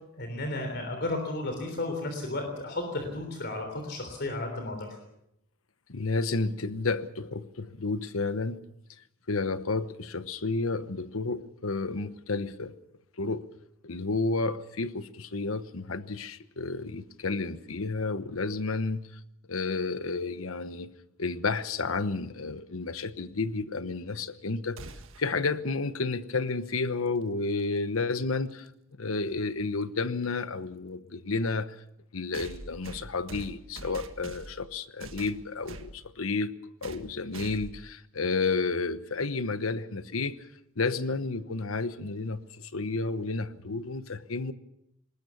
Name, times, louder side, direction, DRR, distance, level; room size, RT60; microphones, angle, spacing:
voice 1, 0.2-4.9, left 2 dB, 55° left, 3.5 m, -33 dB
voice 2, 5.9-8.6 9.3-12.7 13.2-13.5 13.8-19.0 19.5-20.9 21.2-24.8 25.2-28.7 29.0-31.8 32.1-36.5 36.8-40.4 40.8-44.5, left 3 dB, 90° left, 1.1 m, -31 dB
sound 1, 24.8-25.3 27.4-27.5 28.7-28.8 32.3-34.7 35.0-35.9 36.8-37.1 37.3-37.8, right 2 dB, 75° right, 1.7 m, -43 dB
20.5 x 19.5 x 7.1 m
head